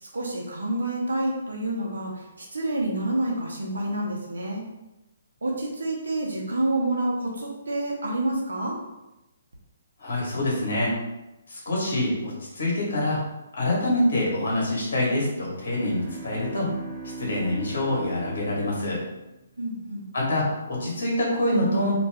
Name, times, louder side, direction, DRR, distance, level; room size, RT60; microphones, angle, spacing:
voice 1, 0.0-4.6 5.4-8.8 19.6-20.0, right 1 dB, 75° right, -1 dB, 0.7 m, -28 dB
voice 2, 10.0-10.9 11.5-13.2 13.6-16.7 17.2-19.0 20.1-21.9, left 1 dB, 65° left, -3 dB, 1.1 m, -25 dB
sound 1, 15.6-19.7, right 3 dB, 15° right, 0.9 m, -40 dB
2.5 x 2.3 x 3.3 m, 0.98 s
figure-of-eight pair, 135°, 0 cm